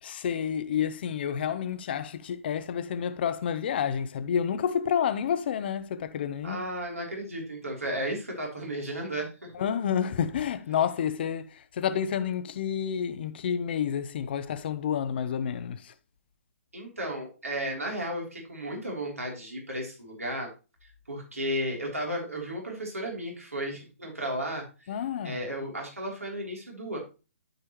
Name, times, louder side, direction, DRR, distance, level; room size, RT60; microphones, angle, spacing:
voice 1, 0.0-6.6 9.5-15.9 24.9-25.4, left 8 dB, 45° left, 0.8 m, -29 dB
voice 2, 6.4-9.5 16.7-20.5 21.1-24.9 25.2-27.0, equal, 80° right, 3.2 m, -34 dB
12.5 x 4.8 x 3.0 m
figure-of-eight pair, 130°, 8 cm